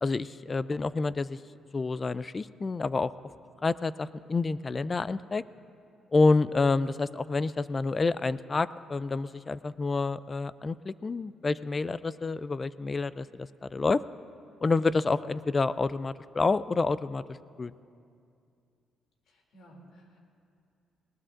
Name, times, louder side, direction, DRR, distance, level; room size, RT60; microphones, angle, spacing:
voice 1, 0.0-1.4 1.7-3.1 3.6-5.4 6.1-14.0 14.6-17.2 17.6-17.7, left 3 dB, 30° left, 17 dB, 0.3 m, -28 dB
voice 2, 19.3-20.2, right 1 dB, 80° left, 0 dB, 2.7 m, -55 dB
20.0 x 19.5 x 2.5 m, 2.4 s
cardioid pair, 90°, 0 cm